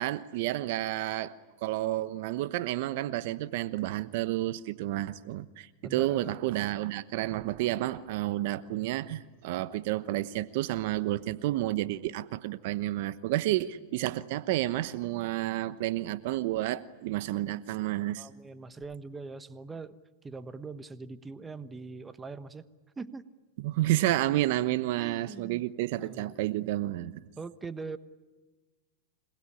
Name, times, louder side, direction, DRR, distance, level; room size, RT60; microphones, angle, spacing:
voice 1, 0.0-1.3 1.6-18.3 23.6-27.2, right 15 dB, 60° right, 15 dB, 1.0 m, -30 dB
voice 2, 5.8-6.3 18.2-19.9 20.2-22.6 23.0-23.2 25.0-25.6 26.0-26.4 27.4-28.0, right 4 dB, 15° right, 13 dB, 1.2 m, -42 dB
27.0 x 20.0 x 9.9 m, 1.3 s
hypercardioid pair, 120°, 0 cm